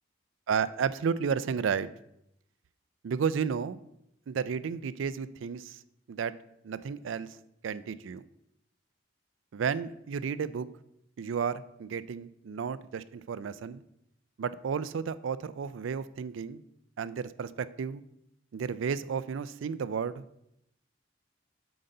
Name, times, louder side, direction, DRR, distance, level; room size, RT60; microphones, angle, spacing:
voice 1, 0.5-1.9 3.0-3.8 4.3-5.8 6.1-6.3 6.6-7.4 7.6-8.2 9.5-10.7 11.2-13.8 14.4-16.6 17.0-18.0 18.5-20.5, right 6 dB, 85° right, 16 dB, 0.4 m, -32 dB
7.8 x 3.9 x 5.4 m, 0.80 s
head